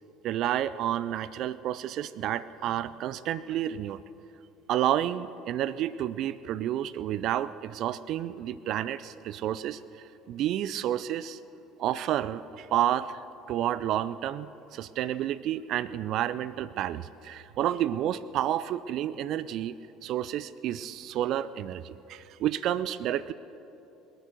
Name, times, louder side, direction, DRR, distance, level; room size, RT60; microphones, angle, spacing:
voice 1, 0.2-4.0 4.7-9.8 10.3-11.4 11.8-13.2 13.5-19.8 20.0-23.3, right 11 dB, 55° right, 16 dB, 0.4 m, -30 dB
21.0 x 10.0 x 6.7 m, 3.0 s
figure-of-eight pair, 60°, 0 cm